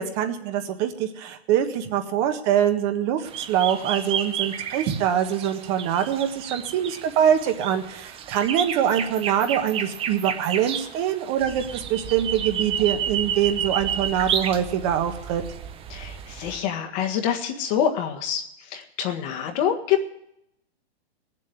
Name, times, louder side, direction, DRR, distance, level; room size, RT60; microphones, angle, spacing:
voice 1, 0.0-15.4, right 9 dB, 40° right, 6 dB, 1.5 m, -24 dB
sound 1, 3.3-16.6, right 8 dB, 20° right, 0.7 m, -31 dB
voice 2, 15.9-18.4 18.7-20.1, left 9 dB, 40° left, 4 dB, 1.7 m, -26 dB
18.0 x 7.6 x 9.3 m, 0.82 s
hypercardioid pair, 140°, 32 cm